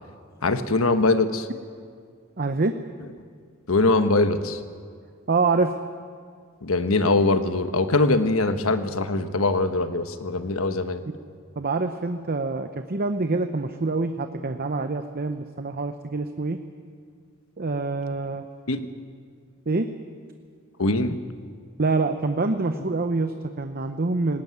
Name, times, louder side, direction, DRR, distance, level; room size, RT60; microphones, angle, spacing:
voice 1, 0.4-1.5 3.7-4.6 6.6-11.0 18.7-18.8 20.8-21.2, left 2 dB, 80° left, 9 dB, 1.2 m, -22 dB
voice 2, 2.4-2.7 5.3-5.7 11.6-16.6 17.6-18.4 19.7-19.9 21.8-24.4, right 3 dB, 45° right, 8 dB, 0.8 m, -26 dB
18.5 x 18.0 x 9.6 m, 2.1 s
head